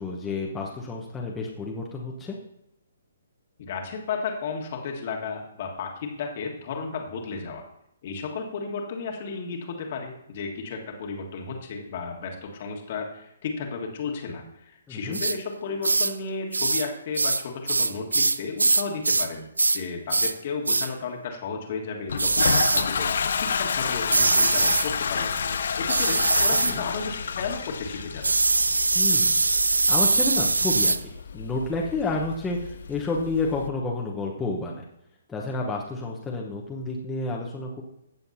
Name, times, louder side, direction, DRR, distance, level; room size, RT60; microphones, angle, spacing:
voice 1, 0.0-2.4 14.9-15.2 26.7-26.8 28.9-29.4 29.9-30.9 31.3-34.8 35.3-37.8, left 3 dB, 10° left, -3 dB, 1.0 m, -30 dB
voice 2, 3.6-7.7 8.0-19.4 19.7-28.3, left 5 dB, 45° left, 1 dB, 1.7 m, -33 dB
sound 1, 15.1-15.4 15.8-16.2 16.5-16.9 17.2-19.3 19.6-19.8 20.1-20.4 20.7-20.9 22.2-22.9 24.1-24.9 25.9-26.8 28.2-31.0, right 3 dB, 80° right, 0.3 m, -22 dB
Toilet flush, 22.1-33.7, left 6 dB, 60° left, 0.6 m, -30 dB
15.5 x 7.0 x 2.8 m, 0.79 s
figure-of-eight pair, 130°, 0 cm